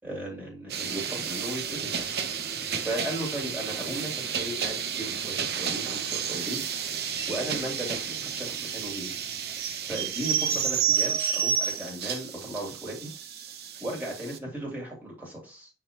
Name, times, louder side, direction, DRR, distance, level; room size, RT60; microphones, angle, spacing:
voice 1, 0.0-2.1 2.8-6.6 7.2-9.1 9.9-13.1 13.8-15.7, right 1 dB, 10° right, -3 dB, 3.1 m, -36 dB
sound 1, 0.7-14.4, right 7 dB, 65° right, 0.8 m, -31 dB
9.1 x 3.8 x 3.0 m, 0.32 s
head